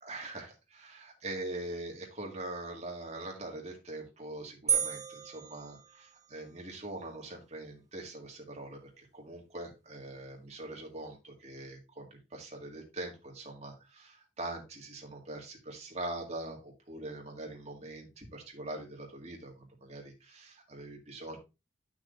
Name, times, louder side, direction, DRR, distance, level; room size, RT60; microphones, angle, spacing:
voice 1, 0.0-21.4, right 2 dB, 35° right, 1 dB, 1.9 m, -43 dB
sound 1, 4.7-6.5, right 8 dB, 15° right, 0.9 m, -33 dB
10.0 x 6.0 x 2.6 m, 0.27 s
head